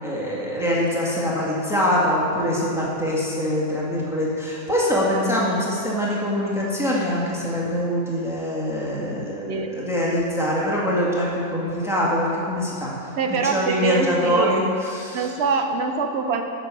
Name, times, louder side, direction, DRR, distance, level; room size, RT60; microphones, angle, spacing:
voice 1, 0.0-12.9 13.5-14.6 14.9-15.3, equal, ahead, -6 dB, 1.7 m, -23 dB
voice 2, 13.2-14.6 15.1-16.4, right 5 dB, 60° right, 5 dB, 0.9 m, -24 dB
9.3 x 6.2 x 6.2 m, 2.9 s
omnidirectional pair, 1.4 m